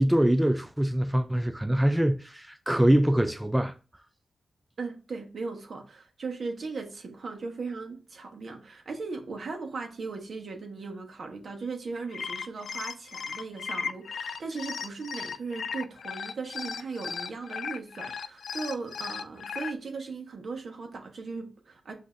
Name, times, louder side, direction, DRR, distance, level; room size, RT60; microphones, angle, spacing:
voice 1, 0.0-3.7, right 1 dB, 5° right, 0.3 m, -24 dB
voice 2, 4.8-21.9, right 4 dB, 65° right, 1.2 m, -38 dB
sound 1, 12.0-19.7, left 6 dB, 80° left, 0.3 m, -36 dB
7.7 x 2.8 x 2.5 m
wide cardioid pair, 95°, 0 cm